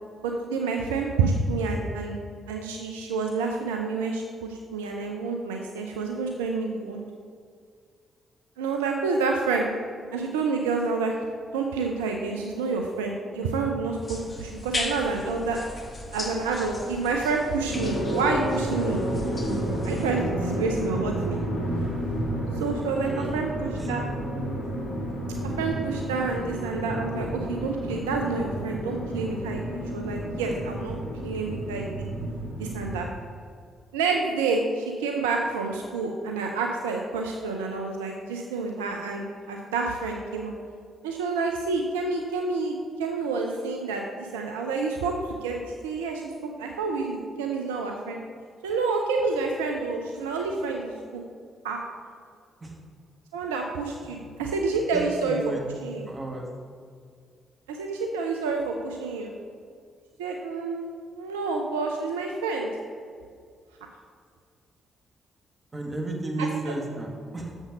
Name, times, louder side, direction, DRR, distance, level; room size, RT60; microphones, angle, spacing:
voice 1, 0.2-2.2 2.5-7.0 8.6-9.7 10.1-11.1 11.5-15.6 16.1-19.0 19.8-21.4 22.5-24.0 25.6-31.0 31.2-32.1 32.6-33.1 33.9-40.5 41.0-46.2 46.6-48.2 48.6-51.2 51.6-51.8 53.3-55.4 55.8-56.1 57.7-59.3 60.2-60.8 61.1-62.7 66.4-66.5, right 4 dB, 80° right, 2 dB, 0.5 m, -28 dB
sound 1, 14.0-20.1, left 2 dB, 35° left, 1.5 m, -37 dB
sound 2, 17.7-33.0, right 1 dB, 85° left, 1.7 m, -31 dB
voice 2, 23.0-23.4 23.8-23.9 25.1-25.4 32.6-32.7 52.6-52.8 54.0-54.2 54.9-55.6 56.1-56.5 65.7-67.5, right 2 dB, 30° right, 1 dB, 1.7 m, -34 dB
7.0 x 5.4 x 6.0 m, 2.1 s
hypercardioid pair, 45°, 0 cm